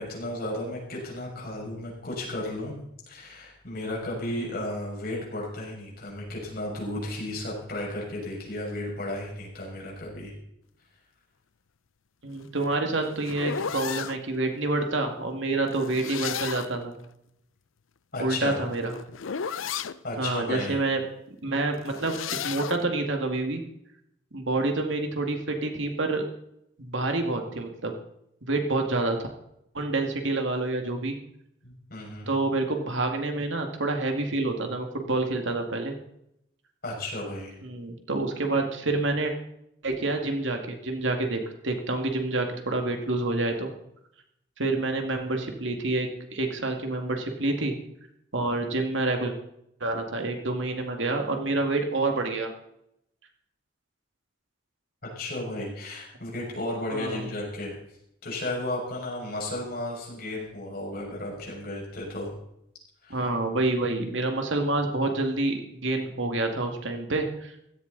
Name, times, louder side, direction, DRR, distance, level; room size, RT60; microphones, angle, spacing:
voice 1, 0.0-2.7 3.1-10.3 18.1-18.6 19.6-19.7 20.0-20.8 31.6-32.3 36.8-37.6 55.1-57.7 58.2-62.3 63.0-63.3, left 1 dB, 50° left, -3 dB, 6.5 m, -34 dB
voice 2, 12.2-17.0 18.2-19.0 20.2-21.0 21.4-22.2 22.4-23.6 24.3-26.2 26.8-27.9 28.4-29.2 29.7-31.2 32.3-35.9 37.6-39.3 39.8-43.7 44.6-47.7 48.3-49.3 49.8-52.5 56.9-57.3 63.1-67.5, right 2 dB, 70° right, 4 dB, 2.2 m, -28 dB
sound 1, 12.4-14.2 15.7-16.8 18.3-20.0 21.7-22.8, left 7 dB, 85° left, 0.6 m, -34 dB
16.5 x 14.5 x 4.1 m, 0.78 s
head